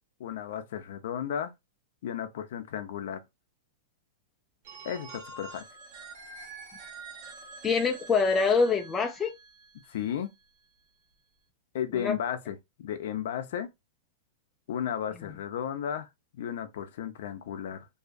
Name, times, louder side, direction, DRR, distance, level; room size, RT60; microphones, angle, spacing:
voice 1, 0.2-1.5 2.0-3.2 4.8-5.6 9.9-10.3 11.7-13.7 14.7-17.9, left 9 dB, 65° left, 0.5 m, -34 dB
Telephone, 4.6-10.4, right 3 dB, 55° right, 1.0 m, -47 dB
voice 2, 7.6-9.3 11.9-12.1 15.2-15.3, left 4 dB, 15° left, 0.4 m, -25 dB
2.7 x 2.4 x 2.3 m
supercardioid pair, 155°, 0 cm